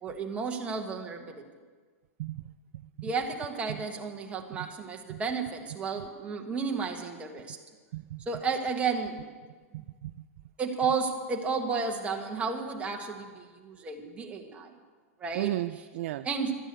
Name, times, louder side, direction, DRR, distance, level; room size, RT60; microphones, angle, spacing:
voice 1, 0.0-1.4 3.0-7.6 8.3-9.2 10.6-14.7 15.2-15.5 16.2-16.6, right 5 dB, 15° right, 2 dB, 1.5 m, -32 dB
voice 2, 2.7-3.1 3.7-3.8 4.6-4.7 5.1-5.2 6.0-6.1 7.9-8.2 9.7-10.1 15.3-16.3, right 16 dB, 55° right, 11 dB, 0.4 m, -35 dB
13.0 x 8.7 x 8.2 m, 1.5 s
hypercardioid pair, 145°, 8 cm